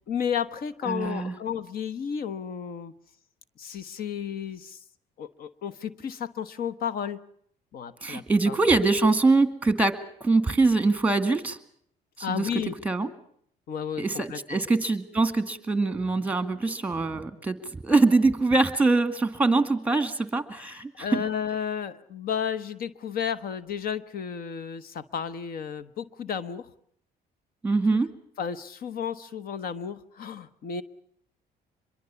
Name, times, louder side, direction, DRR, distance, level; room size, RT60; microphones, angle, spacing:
voice 1, 0.1-2.9 3.6-4.8 5.2-7.2 7.7-8.6 12.2-12.7 13.7-14.6 21.0-26.7 27.9-28.0 28.4-30.8, left 8 dB, 60° left, 14 dB, 1.2 m, -32 dB
voice 2, 0.8-1.3 8.0-11.6 12.3-12.5 12.8-13.1 14.0-21.1 27.6-28.1, right 3 dB, 10° right, 11 dB, 2.1 m, -23 dB
24.5 x 22.5 x 7.0 m, 0.67 s
cardioid pair, 110°, 17 cm